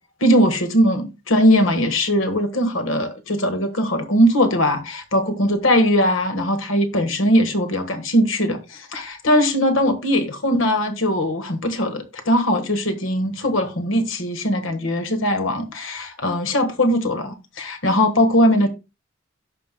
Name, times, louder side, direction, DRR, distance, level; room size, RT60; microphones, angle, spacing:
voice 1, 0.2-18.7, equal, 85° left, 1.5 m, -20 dB
16.5 x 5.5 x 2.2 m
head